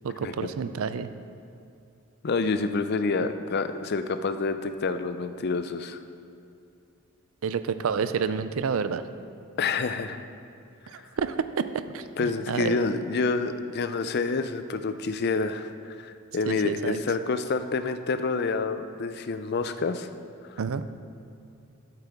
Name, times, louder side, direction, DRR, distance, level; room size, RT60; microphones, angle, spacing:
voice 1, 0.0-1.1 3.2-3.3 7.4-9.0 10.9-11.7 11.9-12.8 16.5-17.0 20.6-20.8, right 6 dB, 70° right, 12 dB, 0.4 m, -29 dB
voice 2, 2.2-6.0 9.6-10.2 12.2-20.1, left 4 dB, 45° left, 10 dB, 0.4 m, -28 dB
12.0 x 8.2 x 3.5 m, 2.6 s
head